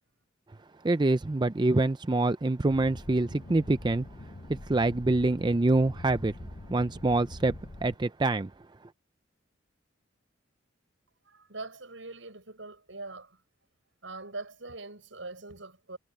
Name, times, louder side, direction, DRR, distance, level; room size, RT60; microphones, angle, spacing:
voice 1, 0.8-4.1 4.5-8.5, right 2 dB, 25° right, 0.5 m, -26 dB
sound 1, 2.7-8.0, left 1 dB, 50° left, 1.0 m, -44 dB
voice 2, 11.3-13.4 14.0-16.0, right 3 dB, 75° right, 7.2 m, -42 dB
head